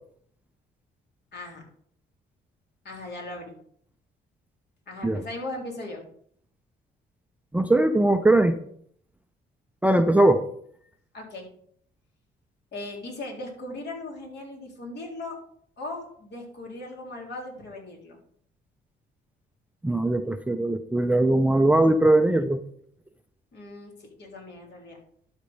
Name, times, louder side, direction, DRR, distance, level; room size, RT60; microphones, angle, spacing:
voice 1, 1.3-1.6 2.8-3.5 4.9-6.0 11.1-11.5 12.7-15.4 15.8-18.2 23.5-25.0, left 2 dB, 60° left, -1 dB, 3.7 m, -38 dB
voice 2, 7.5-8.6 9.8-10.5 19.8-22.6, right 1 dB, 5° right, 9 dB, 0.6 m, -20 dB
12.0 x 4.5 x 5.4 m, 0.63 s
cardioid pair, 90°, 20 cm